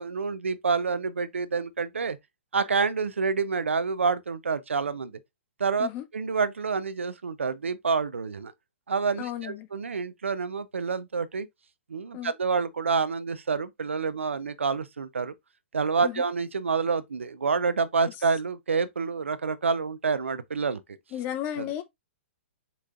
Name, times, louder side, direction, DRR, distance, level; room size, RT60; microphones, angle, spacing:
voice 1, 0.0-2.2 2.5-5.2 5.6-8.5 8.9-11.5 11.9-15.3 15.7-20.8 21.6-21.7, right 5 dB, 80° right, 0.6 m, -28 dB
voice 2, 9.2-9.7 12.1-12.3 16.0-16.2 21.1-21.8, left 11 dB, 30° left, 0.6 m, -33 dB
6.9 x 3.2 x 2.5 m
hypercardioid pair, 120°, 7 cm